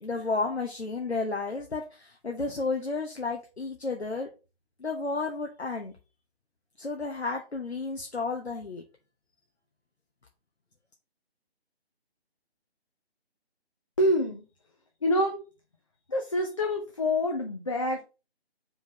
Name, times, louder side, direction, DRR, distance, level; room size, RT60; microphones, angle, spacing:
voice 1, 0.0-4.3 4.8-5.9 6.8-8.8, left 3 dB, 80° left, 3 dB, 1.2 m, -32 dB
voice 2, 14.0-14.4 15.0-15.4 16.1-18.0, left 1 dB, 30° left, 2 dB, 0.7 m, -26 dB
4.8 x 3.9 x 5.1 m, 0.31 s
figure-of-eight pair, 150°, 32 cm